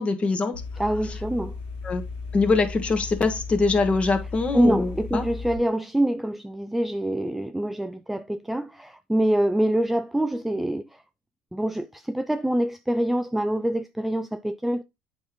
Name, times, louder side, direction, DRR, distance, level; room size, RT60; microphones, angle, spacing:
voice 1, 0.0-0.6 1.8-2.0 2.3-5.3, left 3 dB, 25° left, 1.3 m, -23 dB
sound 1, 0.5-5.6, left 4 dB, 85° left, 2.5 m, -36 dB
voice 2, 0.8-1.6 4.5-10.9 11.5-14.8, right 1 dB, 5° right, 0.4 m, -25 dB
8.6 x 4.5 x 3.7 m
supercardioid pair, 100°, 4 cm